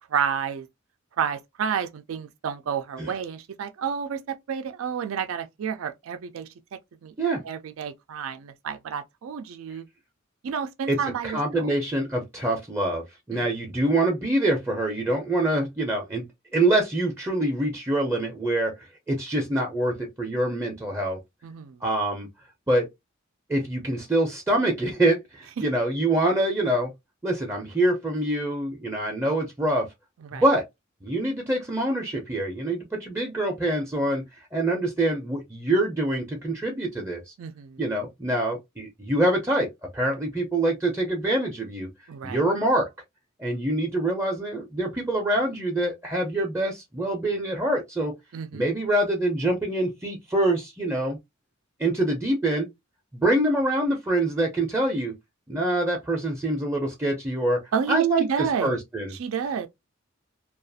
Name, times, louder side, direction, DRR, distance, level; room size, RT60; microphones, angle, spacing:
voice 1, 0.1-0.7 1.2-7.1 7.4-9.9 10.4-11.7 13.3-13.4 21.4-21.8 25.6-25.7 30.2-30.4 37.4-37.8 42.1-42.4 48.3-48.6 57.7-58.8 59.1-59.7, right 7 dB, 80° right, 0.4 m, -30 dB
voice 2, 11.2-16.2 16.5-18.7 19.1-21.2 21.8-22.3 22.7-22.9 23.5-26.9 27.2-29.9 30.3-30.6 31.0-34.2 34.5-37.2 37.8-39.7 39.9-41.9 42.2-42.9 43.4-48.1 48.5-51.2 51.8-52.7 53.1-55.2 55.5-57.6 57.9-58.2 58.6-59.1, right 1 dB, 15° right, 0.5 m, -25 dB
2.4 x 2.3 x 2.6 m
head